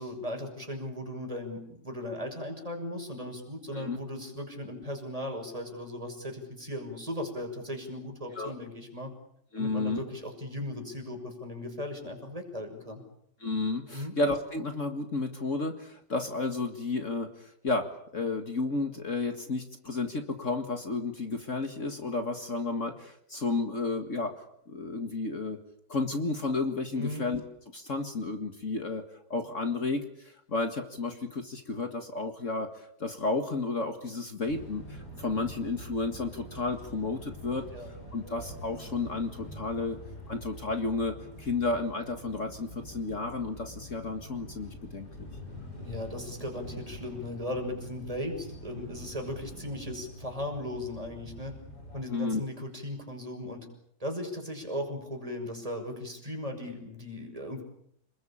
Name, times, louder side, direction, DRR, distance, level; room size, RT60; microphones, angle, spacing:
voice 1, 0.0-9.1 9.6-13.0 13.9-14.2 27.0-27.2 37.7-37.9 45.8-51.5 51.9-53.7 54.0-57.6, left 1 dB, 20° right, 3 dB, 6.2 m, -37 dB
voice 2, 9.5-10.0 13.4-17.9 18.1-24.3 24.7-25.6 25.9-27.4 27.7-29.0 29.3-37.6 38.1-40.0 40.3-45.3 52.1-52.4, left 3 dB, 50° left, 6 dB, 2.1 m, -32 dB
sound 1, 34.5-52.0, equal, 80° left, 8.1 m, -45 dB
28.5 x 21.0 x 8.7 m, 0.73 s
omnidirectional pair, 1.7 m